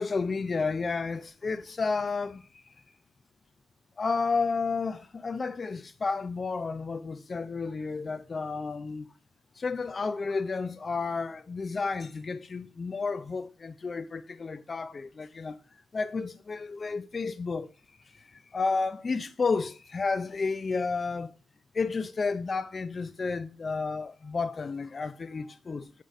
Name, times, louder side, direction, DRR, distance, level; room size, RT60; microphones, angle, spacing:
voice 1, 0.0-2.7 4.0-9.1 9.5-15.6 15.9-17.7 18.1-21.3 21.7-26.0, left 4 dB, 35° left, 0.4 m, -31 dB
8.0 x 4.0 x 5.1 m
cardioid pair, 90°, 0 cm